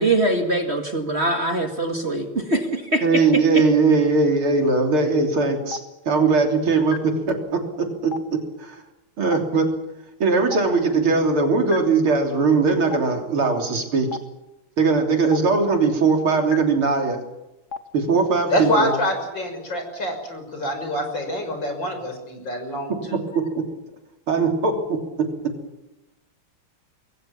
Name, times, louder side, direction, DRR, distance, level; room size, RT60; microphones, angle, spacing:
voice 1, 0.0-3.0 3.5-3.6, right 2 dB, 30° right, 4 dB, 2.2 m, -23 dB
voice 2, 3.0-5.8 6.1-8.8 9.2-9.7 10.2-14.1 14.8-17.2 17.9-18.9 23.1-23.7 24.3-25.3, right 4 dB, 80° right, 3 dB, 4.2 m, -20 dB
Stream, 5.7-5.8 6.9-7.0 8.1-8.2 9.3-9.4 10.5-10.6 11.7-11.8 12.9-13.0 14.1-14.2 15.3-15.4 16.5-16.6 17.7-17.8 18.9-19.0, left 5 dB, 40° left, 1.3 m, -32 dB
voice 3, 18.5-23.2, left 1 dB, 60° left, 5 dB, 6.7 m, -26 dB
26.0 x 22.0 x 7.3 m, 0.98 s
omnidirectional pair, 2.3 m